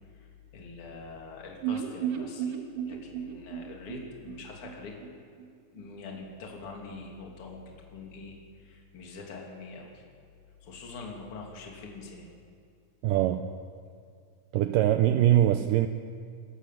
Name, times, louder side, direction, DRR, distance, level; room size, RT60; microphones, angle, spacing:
voice 1, 0.1-2.6 2.9-4.9 5.7-10.0 10.6-12.3, left 3 dB, 35° left, 0 dB, 3.4 m, -44 dB
sound 1, 1.6-5.5 5.8-5.9 6.2-6.3, right 9 dB, 65° right, 2.9 m, -35 dB
voice 2, 13.0-13.5 14.5-15.9, right 12 dB, 80° right, 9 dB, 2.0 m, -23 dB
28.0 x 14.5 x 7.6 m, 2.3 s
omnidirectional pair, 4.5 m